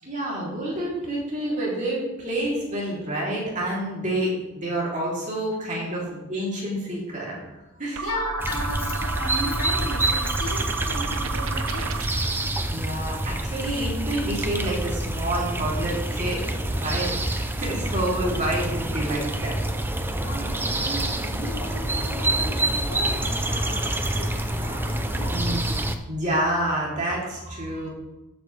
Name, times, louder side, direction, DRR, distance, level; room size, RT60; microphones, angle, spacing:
voice 1, 0.0-7.4 7.8-8.1 12.7-19.6 23.5-24.9 25.3-25.7 26.1-27.9, right 1 dB, 35° right, -4 dB, 3.3 m, -28 dB
sound 1, 7.9-12.3, right 4 dB, 70° right, 0.8 m, -31 dB
voice 2, 8.0-11.9 20.0-25.4, left 1 dB, 80° left, -4 dB, 3.5 m, -36 dB
sound 2, 8.4-26.0, right 1 dB, 10° right, 0.6 m, -27 dB
13.5 x 7.8 x 3.4 m, 1.0 s
head